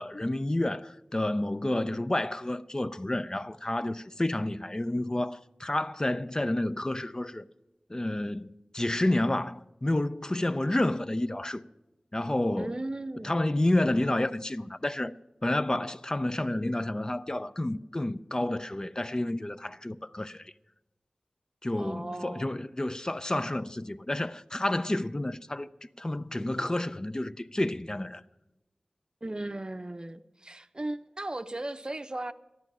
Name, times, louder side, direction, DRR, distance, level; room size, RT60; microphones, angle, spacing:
voice 1, 0.0-7.5 7.9-11.6 12.1-12.8 13.2-15.1 15.4-20.5 21.6-25.7 26.0-28.2, left 1 dB, 30° left, 0.4 m, -30 dB
voice 2, 12.6-13.4 21.8-22.5 29.2-32.3, right 2 dB, 35° right, 0.6 m, -36 dB
13.5 x 11.0 x 6.2 m
wide cardioid pair, 60°, 2 cm